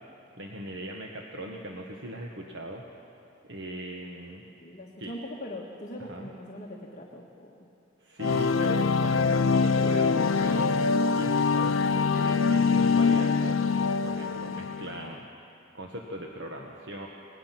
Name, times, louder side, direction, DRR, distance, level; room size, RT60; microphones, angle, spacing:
voice 1, 0.4-2.8 3.4-4.4 5.0-5.2 6.0-6.3 8.0-10.8 11.0-13.7 14.0-17.1, right 1 dB, 55° right, 0 dB, 1.4 m, -39 dB
voice 2, 4.5-7.5, left 1 dB, 35° left, -2 dB, 1.6 m, -41 dB
sound 1, 8.2-15.1, left 5 dB, 75° left, 0.6 m, -24 dB
26.0 x 19.5 x 5.9 m, 2.7 s
head